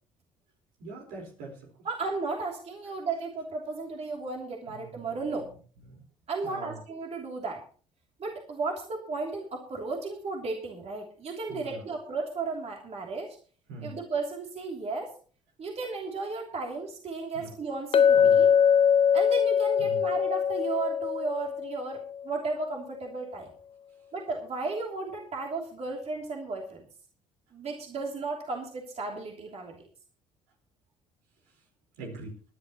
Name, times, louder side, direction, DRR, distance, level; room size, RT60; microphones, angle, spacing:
voice 1, 0.8-1.6 4.7-5.0 5.9-6.0 6.4-6.8 11.5-11.8 13.7-14.0 18.1-18.4 19.8-20.0 32.0-32.3, right 2 dB, 80° right, 2 dB, 4.6 m, -42 dB
voice 2, 1.8-5.5 6.3-7.6 8.2-13.4 13.8-15.1 15.6-18.5 19.1-23.5 24.1-26.8 27.5-29.9, right 3 dB, 45° right, 1 dB, 3.1 m, -34 dB
Chink clink, 17.9-22.1, left 7 dB, 40° left, 0.7 m, -22 dB
21.0 x 11.0 x 3.1 m, 0.40 s
hypercardioid pair, 60°, 15 cm